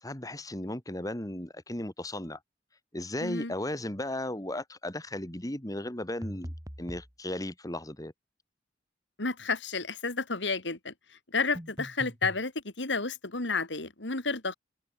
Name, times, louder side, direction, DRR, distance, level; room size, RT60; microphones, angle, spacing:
voice 1, 0.0-2.4 2.9-8.1, left 1 dB, 20° left, 2.8 m, -36 dB
voice 2, 3.2-3.5 9.2-14.5, left 4 dB, 85° left, 3.2 m, -31 dB
sound 1, 6.2-7.1 11.5-12.4, equal, 20° right, 4.2 m, -41 dB
open air
head